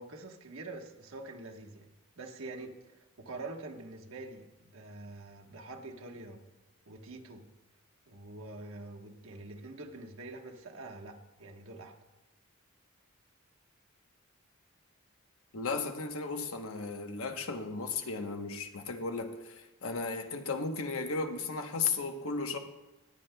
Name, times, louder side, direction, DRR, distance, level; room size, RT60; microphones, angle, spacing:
voice 1, 0.0-1.9 2.2-6.4 6.8-7.5 8.1-12.0, right 2 dB, 75° right, 2 dB, 1.2 m, -45 dB
voice 2, 15.5-22.6, left 4 dB, 80° left, 6 dB, 0.9 m, -35 dB
20.5 x 9.3 x 2.2 m, 1.0 s
head